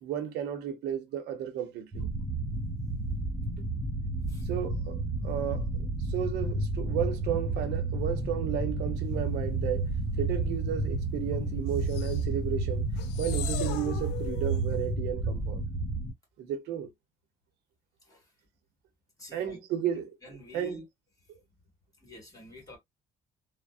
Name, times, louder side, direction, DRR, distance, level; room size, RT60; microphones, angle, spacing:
voice 1, 0.0-2.1 4.5-9.8 10.2-12.9 13.2-15.6 16.4-16.9 19.3-20.2 20.5-20.8, right 9 dB, 80° right, 0.7 m, -33 dB
sound 1, 1.9-16.1, right 2 dB, 15° right, 1.2 m, -31 dB
sound 2, 11.7-12.2 13.0-14.6, left 11 dB, 90° left, 0.5 m, -39 dB
voice 2, 19.2-19.6 20.2-20.9 21.5-21.6 22.0-22.8, equal, 20° left, 1.9 m, -48 dB
3.3 x 2.0 x 2.3 m
cardioid pair, 110°, 17 cm